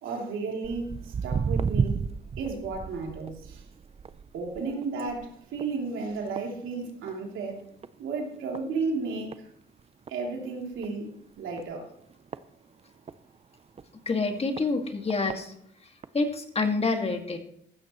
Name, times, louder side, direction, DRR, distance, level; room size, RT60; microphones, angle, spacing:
voice 1, 0.0-3.6 4.3-7.6 8.0-9.5 10.1-11.1 11.4-11.9, right 4 dB, 80° right, 0 dB, 3.1 m, -33 dB
Walk footsteps, 0.6-7.3 7.6-8.0 8.5-8.6 9.3-9.4 9.8-9.9 10.1-10.2 10.7-10.9 11.6-13.2 13.8-13.9 14.6-14.7 15.1-15.4 16.0-16.1, right 6 dB, 30° right, 0.5 m, -33 dB
voice 2, 14.1-15.5 16.1-17.4, left 3 dB, 30° left, 4 dB, 2.1 m, -27 dB
15.0 x 13.0 x 3.1 m, 0.70 s
cardioid pair, 90°, 20 cm